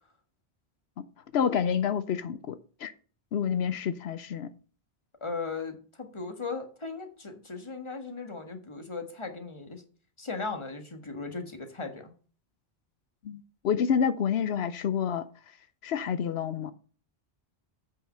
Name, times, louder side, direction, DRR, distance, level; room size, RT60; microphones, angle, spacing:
voice 1, 1.3-2.9 3.3-4.5 13.2-15.3 15.8-16.7, left 7 dB, 85° left, 0.9 m, -28 dB
voice 2, 5.2-9.8 10.2-12.1, left 4 dB, 30° left, 1.6 m, -37 dB
8.7 x 5.6 x 5.6 m
omnidirectional pair, 1.0 m